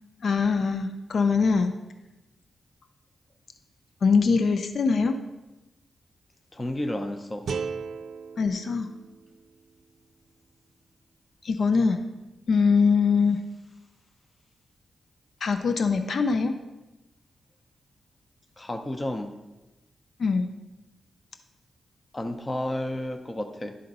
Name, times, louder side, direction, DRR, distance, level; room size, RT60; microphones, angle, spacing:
voice 1, 0.2-1.7 4.0-5.2 8.4-8.9 11.4-12.1 12.5-13.4 15.4-16.5 20.2-20.5, left 5 dB, 70° left, 8 dB, 0.5 m, -22 dB
voice 2, 6.5-7.5 18.6-19.3 22.1-23.7, left 1 dB, 25° left, 7 dB, 0.6 m, -31 dB
sound 1, 7.5-10.6, right 5 dB, 75° right, 0.5 m, -37 dB
11.5 x 3.8 x 5.3 m, 1.0 s
cardioid pair, 80°, 0 cm